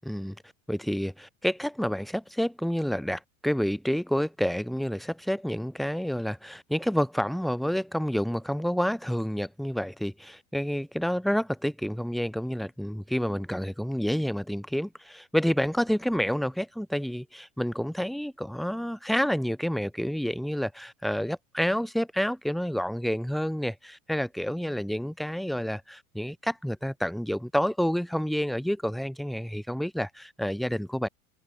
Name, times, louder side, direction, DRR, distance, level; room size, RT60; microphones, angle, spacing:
voice 1, 0.0-0.4 0.7-31.1, equal, ahead, 1.5 m, -29 dB
hypercardioid pair, 90°, 44 cm